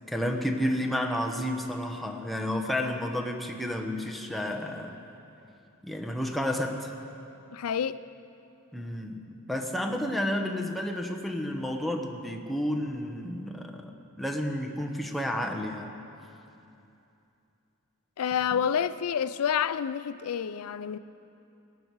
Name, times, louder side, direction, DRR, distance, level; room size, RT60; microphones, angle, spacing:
voice 1, 0.0-5.0 5.8-6.9 8.7-15.9, left 1 dB, ahead, 0.9 m, -31 dB
voice 2, 7.5-8.0 18.2-21.0, left 8 dB, 90° left, 0.4 m, -28 dB
18.5 x 12.0 x 4.7 m
head